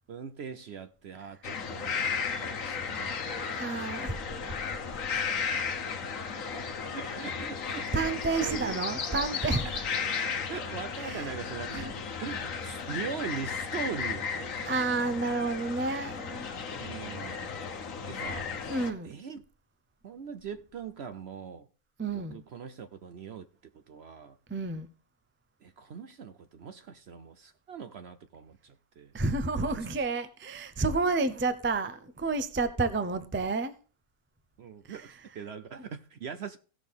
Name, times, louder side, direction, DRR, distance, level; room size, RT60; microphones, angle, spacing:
voice 1, 0.1-3.6 6.9-8.1 8.4-8.8 9.6-9.8 10.5-14.7 16.8-17.4 17.7-18.6 19.0-19.4 20.0-21.7 22.1-23.5 23.9-24.4 25.6-29.1 34.6-36.6, right 6 dB, 60° right, 0.7 m, -41 dB
sound 1, 1.4-18.9, left 6 dB, 65° left, 1.4 m, -34 dB
voice 2, 3.6-4.2 4.5-5.0 7.7-9.7 11.0-11.3 11.7-11.9 14.6-16.5 18.6-19.2 22.0-22.4 24.5-24.9 29.1-33.7 34.8-35.2, right 3 dB, 20° right, 0.3 m, -30 dB
16.5 x 6.1 x 3.6 m
omnidirectional pair, 1.6 m